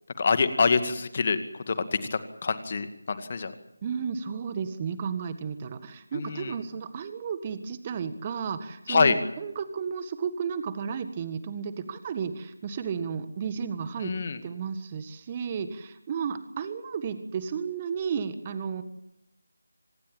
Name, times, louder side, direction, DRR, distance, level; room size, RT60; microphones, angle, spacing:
voice 1, 0.2-1.4 1.7-1.8 2.1-3.5 6.1-6.5 8.9-9.2 14.0-14.4, left 4 dB, 35° left, 10 dB, 2.1 m, -25 dB
voice 2, 3.8-14.1 14.4-18.8, right 6 dB, 20° right, 11 dB, 1.6 m, -33 dB
26.0 x 20.0 x 7.7 m, 0.83 s
figure-of-eight pair, 160°, 0 cm